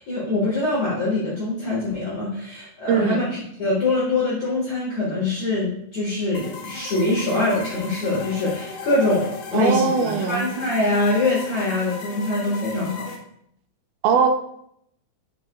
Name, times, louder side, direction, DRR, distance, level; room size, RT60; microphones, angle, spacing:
voice 1, 0.0-13.1, left 2 dB, 55° left, -6 dB, 2.3 m, -24 dB
voice 2, 2.9-3.3 9.5-10.5 14.0-14.3, right 6 dB, 80° right, 5 dB, 2.3 m, -20 dB
sound 1, 6.3-13.2, left 4 dB, 75° left, 2.2 m, -37 dB
8.8 x 5.1 x 2.3 m, 0.72 s
omnidirectional pair, 4.4 m